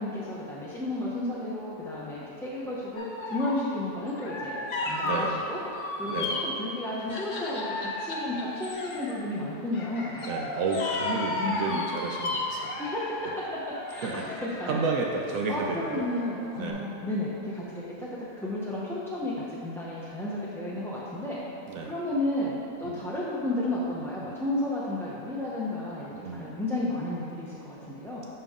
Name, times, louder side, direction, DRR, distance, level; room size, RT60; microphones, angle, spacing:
voice 1, 0.0-5.6 6.0-6.1 6.4-10.3 11.4-11.9 12.8-13.3 13.9-14.3 14.6-14.8 15.5-21.4 21.8-28.3, left 1 dB, 5° left, -9 dB, 0.4 m, -32 dB
sound 1, 3.0-3.7 4.1-6.6 7.1-9.2 9.7-16.4 16.7-16.8, left 2 dB, 45° left, 0.7 m, -34 dB
voice 2, 5.0-5.4 6.1-6.3 10.2-12.8 14.0-14.3 14.6-16.0 16.6-16.9 21.7-21.9 22.8-23.0 26.1-26.6, right 4 dB, 75° right, 0 dB, 1.0 m, -32 dB
6.8 x 5.6 x 3.6 m, 2.8 s
omnidirectional pair, 1.4 m